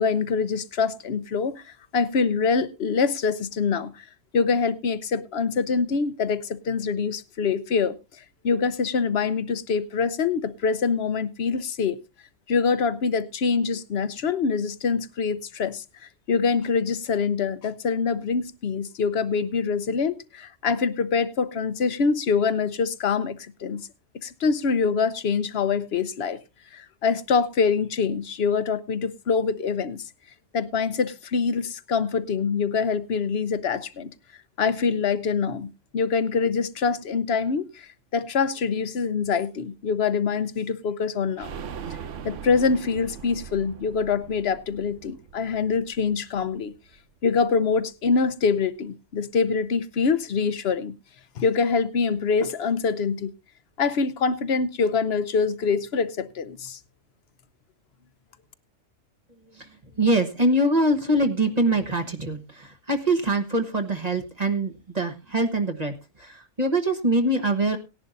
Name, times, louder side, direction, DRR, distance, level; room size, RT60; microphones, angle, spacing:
voice 1, 0.0-1.6 1.9-4.0 4.3-8.0 8.4-12.0 12.5-15.8 16.3-23.9 24.1-26.4 26.7-30.0 30.5-34.1 34.6-35.7 35.9-41.5 42.2-46.7 47.2-50.9 51.4-53.3 53.8-56.8, left 5 dB, 60° left, 1.0 m, -25 dB
sound 1, 41.4-47.0 47.3-47.4 47.7-47.8, right 7 dB, 85° right, 1.2 m, -41 dB
voice 2, 59.5-67.8, right 1 dB, 35° right, 1.3 m, -24 dB
18.5 x 10.5 x 2.6 m
omnidirectional pair, 1.2 m